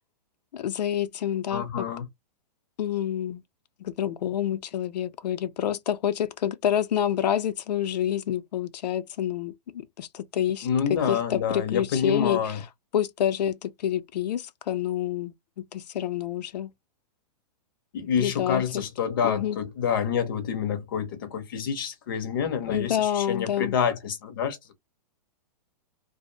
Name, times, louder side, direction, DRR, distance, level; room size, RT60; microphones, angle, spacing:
voice 1, 0.5-1.9 2.8-3.4 3.8-12.6 12.9-15.3 15.7-16.7 18.2-18.8 19.2-19.6 22.7-23.8, left 10 dB, 85° left, 0.5 m, -28 dB
voice 2, 1.5-2.1 10.6-12.6 17.9-24.6, left 7 dB, 35° left, 0.5 m, -27 dB
2.5 x 2.0 x 2.5 m
hypercardioid pair, 180°, 21 cm